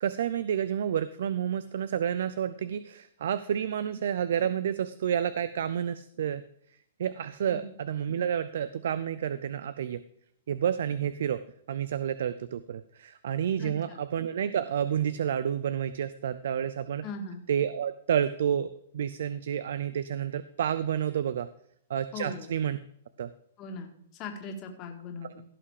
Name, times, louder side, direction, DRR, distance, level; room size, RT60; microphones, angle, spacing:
voice 1, 0.0-6.4 7.0-10.0 10.5-11.4 11.7-17.0 17.5-21.5 21.9-22.8 23.2-23.3, right 9 dB, 70° right, 14 dB, 0.5 m, -30 dB
voice 2, 13.6-14.0 17.0-17.4 22.1-22.5 23.6-25.4, left 3 dB, 30° left, 3 dB, 2.0 m, -40 dB
16.5 x 5.8 x 4.9 m, 0.71 s
hypercardioid pair, 150°, 0 cm